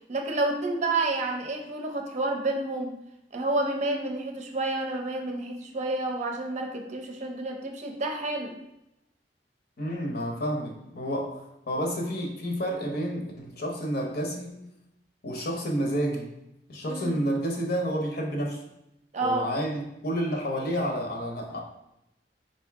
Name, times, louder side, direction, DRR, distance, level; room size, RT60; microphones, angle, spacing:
voice 1, 0.1-2.9 3.3-8.6 16.9-17.2 19.1-19.5, right 2 dB, 40° right, 2 dB, 0.6 m, -29 dB
voice 2, 9.8-14.5 15.2-16.3 16.7-18.6 19.2-21.6, equal, 60° left, 1 dB, 0.9 m, -30 dB
4.4 x 2.7 x 3.5 m, 0.85 s
head